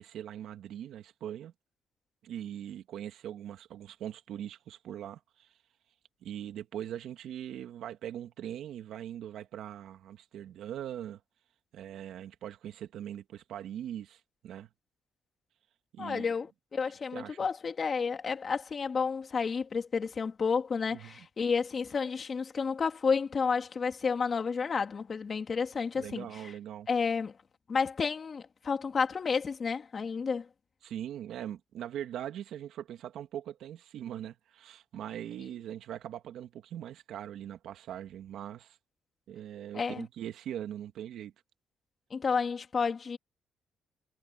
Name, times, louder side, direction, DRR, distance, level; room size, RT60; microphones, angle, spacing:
voice 1, 0.0-1.5 2.2-5.5 6.2-11.2 11.7-14.7 15.9-16.3 17.1-17.4 20.9-21.3 25.9-26.9 30.8-38.8 39.3-41.3, right 10 dB, 75° right, 2.0 m, -41 dB
voice 2, 16.0-26.3 26.9-27.3 27.7-30.5 39.7-40.0 42.1-43.2, left 5 dB, 40° left, 2.8 m, -31 dB
cardioid pair, 90°, 0 cm